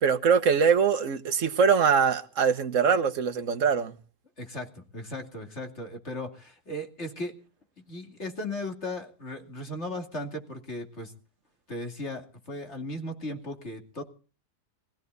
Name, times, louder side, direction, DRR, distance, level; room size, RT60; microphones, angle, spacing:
voice 1, 0.0-3.9, right 6 dB, 55° right, 1.4 m, -23 dB
voice 2, 4.4-7.3 7.9-11.1 11.7-14.0, left 1 dB, 45° left, 2.8 m, -36 dB
21.5 x 16.0 x 4.1 m
omnidirectional pair, 1.7 m